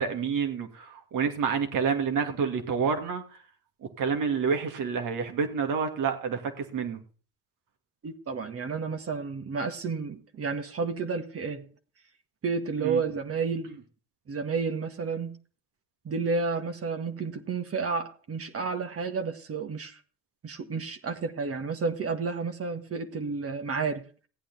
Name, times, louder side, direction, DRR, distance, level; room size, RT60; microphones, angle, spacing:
voice 1, 0.0-3.2 4.0-7.0 12.8-13.0, right 6 dB, 70° right, 5 dB, 2.7 m, -28 dB
voice 2, 8.0-11.7 12.4-13.7 14.3-15.4 16.1-20.0 20.4-24.0, right 4 dB, 45° right, 7 dB, 1.7 m, -31 dB
15.5 x 8.8 x 4.2 m, 0.39 s
supercardioid pair, 75°, 33 cm